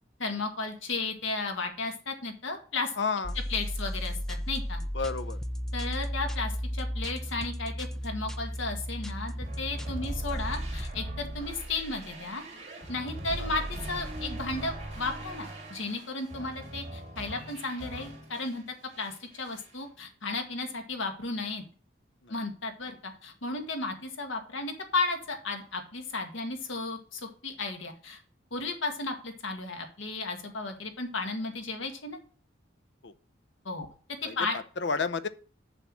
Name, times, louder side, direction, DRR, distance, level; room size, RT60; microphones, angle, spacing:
voice 1, 0.2-2.9 3.5-4.8 5.7-12.4 12.9-18.6 19.0-21.6 22.3-28.2 28.5-32.2 33.6-33.9 34.2-34.6, left 3 dB, 85° left, 4 dB, 1.8 m, -34 dB
voice 2, 3.0-3.4 4.9-5.4 13.4-13.5 16.3-16.5 22.2-22.4 22.8-23.0 33.0-33.1 34.2-35.3, left 4 dB, 60° left, 12 dB, 0.7 m, -32 dB
sound 1, 3.2-10.9, equal, 5° left, 0.4 m, -34 dB
sound 2, 9.4-18.6 18.9-19.7, right 1 dB, 35° right, 3.0 m, -40 dB
6.9 x 5.7 x 7.4 m, 0.41 s
head